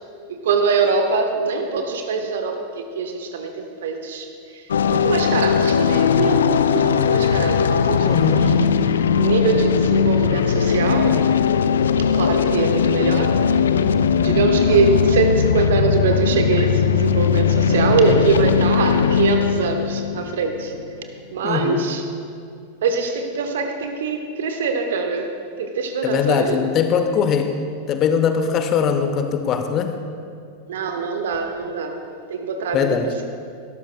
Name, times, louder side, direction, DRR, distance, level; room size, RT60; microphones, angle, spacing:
voice 1, 0.3-4.6 4.9-8.5 9.0-11.4 12.1-13.5 13.9-20.7 21.3-22.0 22.8-26.6 30.7-32.0 32.3-33.3, right 4 dB, 60° right, 5 dB, 1.0 m, -23 dB
World of ants pad, 4.7-21.0, left 7 dB, 65° left, 0.4 m, -19 dB
voice 2, 8.1-8.6 21.4-21.9 26.0-27.6 27.9-29.9 32.7-33.1, left 7 dB, 35° left, 7 dB, 0.8 m, -21 dB
18.0 x 13.0 x 2.2 m, 2.3 s
figure-of-eight pair, 90°, 0 cm